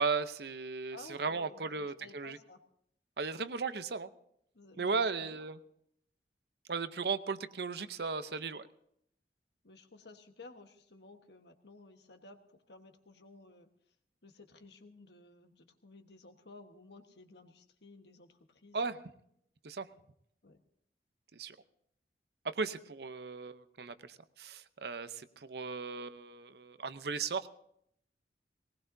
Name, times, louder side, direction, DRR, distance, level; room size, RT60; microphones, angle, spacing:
voice 1, 0.0-2.4 3.2-4.1 4.8-5.6 6.7-8.7 18.7-19.0 19.6-19.9 21.3-21.6 22.4-27.5, right 4 dB, 65° right, 12 dB, 0.7 m, -36 dB
voice 2, 0.9-2.6 4.5-5.0 9.6-13.7 14.2-19.0 20.4-20.6, left 3 dB, 75° left, 6 dB, 1.3 m, -55 dB
19.5 x 19.0 x 2.7 m, 0.71 s
head